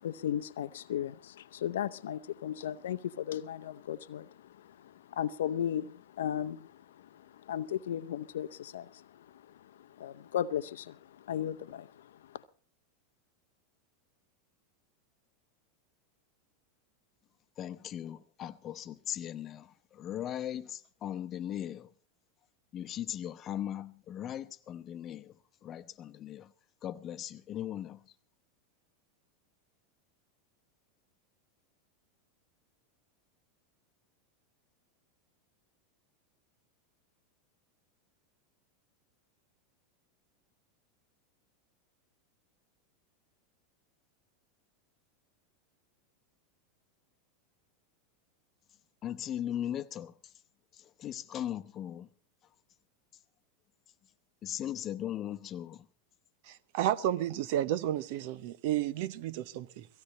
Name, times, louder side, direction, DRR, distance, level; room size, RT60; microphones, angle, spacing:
voice 1, 0.0-4.5 4.8-6.7 7.1-9.3 9.8-12.1, left 10 dB, 75° left, 0.7 m, -36 dB
voice 2, 17.6-19.7 20.0-21.9 22.7-25.3 25.6-26.5 26.8-28.0 49.0-50.1 51.0-52.1 54.4-55.8, left 11 dB, 35° left, 0.9 m, -38 dB
voice 3, 56.4-59.9, right 12 dB, 60° right, 0.8 m, -32 dB
17.5 x 16.0 x 4.2 m
hypercardioid pair, 90°, 0 cm